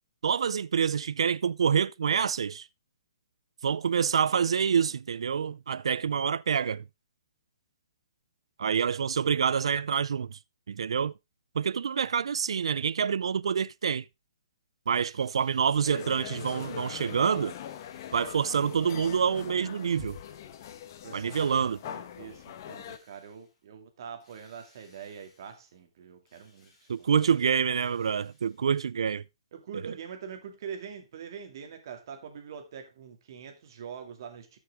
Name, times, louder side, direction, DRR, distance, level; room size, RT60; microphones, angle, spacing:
voice 1, 0.2-2.7 3.6-6.8 8.6-10.4 10.7-11.1 11.6-14.0 14.9-17.5 18.1-20.2 21.1-21.8 26.9-29.2 29.8-29.9, right 7 dB, 75° right, 0.4 m, -27 dB
Drill, 14.9-19.0 19.7-20.7 21.2-22.1 22.7-23.6 24.2-25.8 26.2-28.8, left 3 dB, 20° left, 5.0 m, -64 dB
sound 1, 15.8-23.0, left 10 dB, 35° left, 1.2 m, -42 dB
voice 2, 21.0-26.7 27.0-27.1 29.5-34.6, right 7 dB, 45° right, 2.3 m, -44 dB
13.5 x 6.4 x 3.5 m
hypercardioid pair, 170°, 3 cm